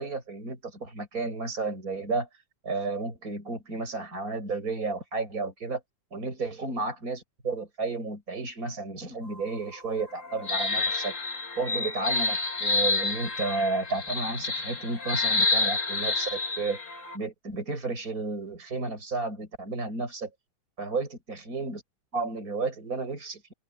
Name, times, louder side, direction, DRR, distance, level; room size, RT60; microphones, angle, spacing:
voice 1, 0.0-2.3 2.6-5.8 6.1-11.1 11.6-16.8 17.1-20.3 20.8-21.8 22.1-23.5, right 3 dB, 25° right, 8.1 m, -32 dB
sound 1, 9.2-17.2, left 3 dB, 30° left, 1.8 m, -29 dB
open air
omnidirectional pair, 3.6 m